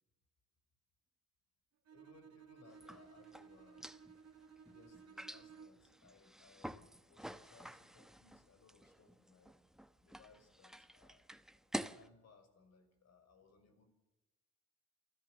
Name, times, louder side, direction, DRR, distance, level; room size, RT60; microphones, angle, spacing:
voice 1, 1.9-4.0 4.7-9.6 10.0-11.3 11.9-13.9, left 4 dB, 60° left, 8 dB, 6.1 m, -65 dB
Bowed string instrument, 1.9-6.0, right 6 dB, 55° right, 1.5 m, -58 dB
sound 1, 2.7-12.1, equal, ahead, 1.0 m, -49 dB
29.0 x 13.5 x 7.8 m, 1.0 s
cardioid pair, 90°, 30 cm